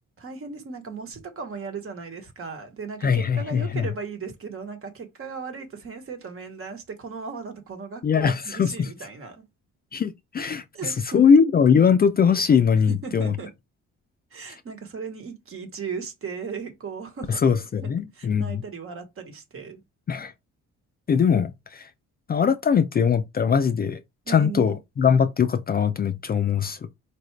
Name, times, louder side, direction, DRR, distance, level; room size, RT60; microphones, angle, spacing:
voice 1, 0.2-9.4 10.7-11.2 12.9-13.5 14.3-17.4 17.8-19.8 24.3-24.8, right 5 dB, 45° right, 1.2 m, -37 dB
voice 2, 3.0-3.9 8.0-8.9 9.9-13.3 17.3-18.6 20.1-20.3 21.1-21.9 22.3-24.0 24.3-26.8, left 6 dB, 30° left, 0.4 m, -21 dB
4.6 x 2.4 x 3.2 m
cardioid pair, 90°, 30 cm